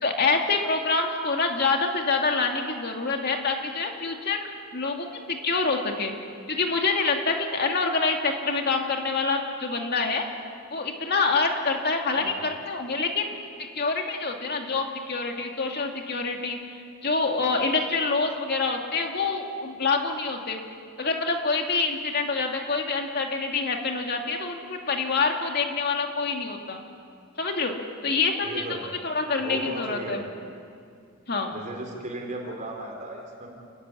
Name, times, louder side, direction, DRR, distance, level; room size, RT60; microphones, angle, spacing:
voice 1, 0.0-4.5 4.7-6.1 6.5-10.2 10.7-13.3 13.7-20.6 21.0-26.8 27.4-27.7 28.0-28.8 29.0-30.2 31.3-31.6, left 4 dB, 45° left, 2 dB, 2.5 m, -26 dB
voice 2, 12.1-12.5 28.4-28.9 29.4-30.3 31.5-33.5, right 1 dB, 35° right, 0 dB, 4.2 m, -36 dB
30.0 x 14.5 x 9.9 m, 2.3 s
head